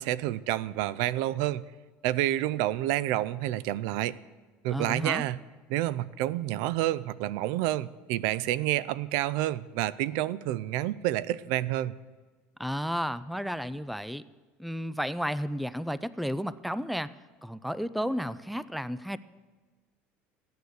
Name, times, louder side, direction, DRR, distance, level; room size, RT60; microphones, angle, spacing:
voice 1, 0.0-1.6 2.0-4.2 4.6-5.4 5.7-12.0, right 14 dB, 75° right, 19 dB, 0.5 m, -29 dB
voice 2, 4.7-5.2 12.6-14.2 14.6-17.1 17.4-19.2, equal, ahead, 16 dB, 0.4 m, -32 dB
15.5 x 9.4 x 6.5 m, 1.3 s
cardioid pair, 130°, 5 cm